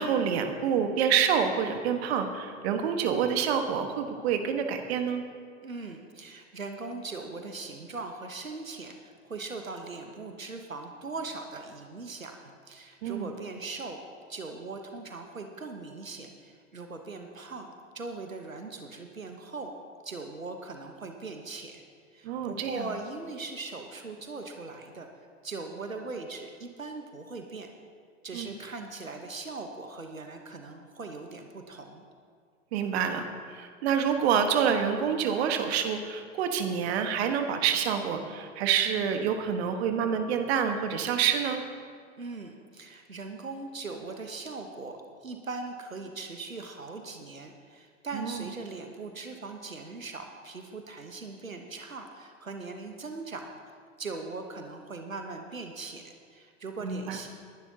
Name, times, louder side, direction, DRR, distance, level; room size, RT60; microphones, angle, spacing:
voice 1, 0.0-5.2 13.0-13.3 22.2-22.9 28.3-28.5 32.7-41.6 48.1-48.5 56.8-57.2, right 7 dB, 50° right, 6 dB, 1.3 m, -27 dB
voice 2, 5.6-14.0 14.3-17.7 17.9-19.7 20.0-21.8 22.1-25.1 25.4-27.7 28.2-32.0 42.2-53.5 54.0-57.3, right 3 dB, 90° right, 5 dB, 1.1 m, -40 dB
20.0 x 11.0 x 2.8 m, 2.2 s
figure-of-eight pair, 95°, 39 cm